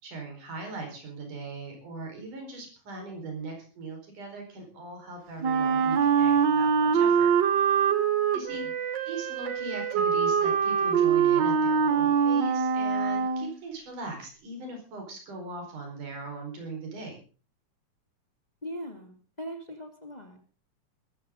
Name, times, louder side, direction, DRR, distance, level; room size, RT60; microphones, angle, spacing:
voice 1, 0.0-7.3 8.3-8.6 9.1-17.2, right 3 dB, 85° right, 3 dB, 6.2 m, -39 dB
Wind instrument woodwind instrument, 5.4-13.5, right 7 dB, 65° right, 1.1 m, -24 dB
voice 2, 18.6-20.4, equal, 15° left, 3 dB, 2.4 m, -40 dB
21.0 x 14.0 x 3.8 m, 0.36 s
omnidirectional pair, 3.5 m